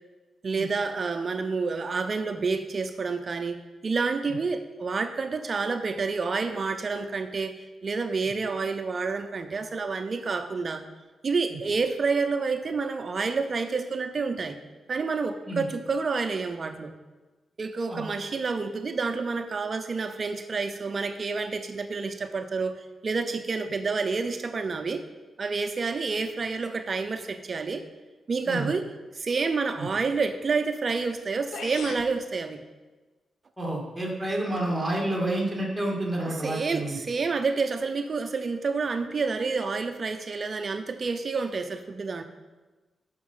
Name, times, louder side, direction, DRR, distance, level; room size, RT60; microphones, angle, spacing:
voice 1, 0.4-10.8 11.2-14.6 14.9-16.9 17.6-25.0 25.4-27.8 28.3-28.8 29.2-32.6 36.2-42.2, right 4 dB, 40° right, 7 dB, 0.6 m, -29 dB
sound 1, 31.2-31.3 31.5-32.1, left 4 dB, 75° left, 0.9 m, -37 dB
voice 2, 33.6-37.0, right 1 dB, 5° right, -2 dB, 2.4 m, -29 dB
10.0 x 5.9 x 5.6 m, 1.2 s
wide cardioid pair, 145°, 0 cm